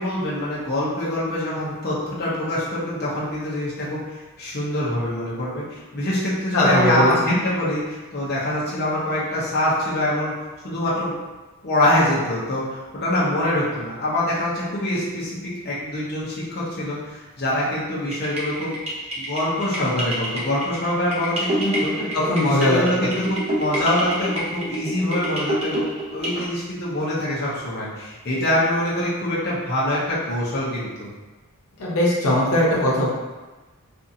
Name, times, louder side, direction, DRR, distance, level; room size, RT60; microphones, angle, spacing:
voice 1, 0.0-4.0 4.4-10.3 10.6-11.1 11.6-15.4 15.6-18.8 19.2-21.9 22.4-25.9 26.1-31.1, left 1 dB, 45° left, -8 dB, 0.7 m, -24 dB
voice 2, 6.5-7.4 22.0-23.1 31.8-33.1, left 1 dB, 85° left, -5 dB, 0.7 m, -20 dB
sound 1, 18.1-26.5, equal, 30° right, 0.5 m, -28 dB
2.6 x 2.4 x 2.6 m, 1.2 s
head